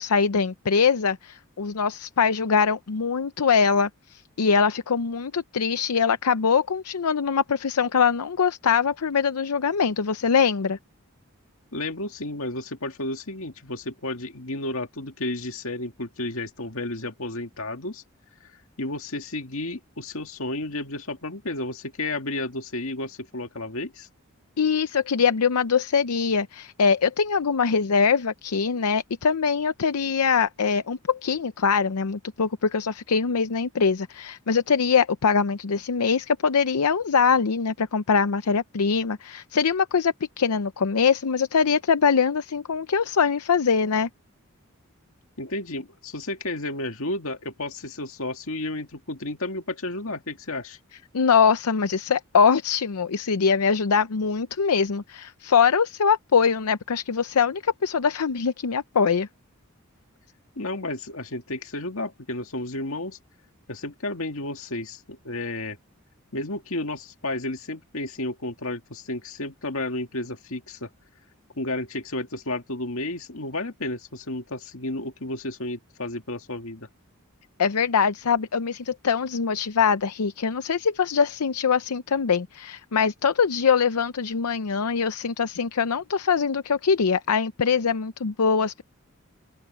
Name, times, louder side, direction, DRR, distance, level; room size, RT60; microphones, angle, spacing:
voice 1, 0.0-10.8 24.6-44.1 51.1-59.3 77.6-88.8, left 6 dB, 90° left, 0.6 m, -23 dB
voice 2, 11.7-18.0 18.8-24.1 45.4-50.8 60.6-63.2 63.7-65.8 66.3-70.9 71.6-76.9, left 2 dB, 70° left, 2.1 m, -32 dB
open air
head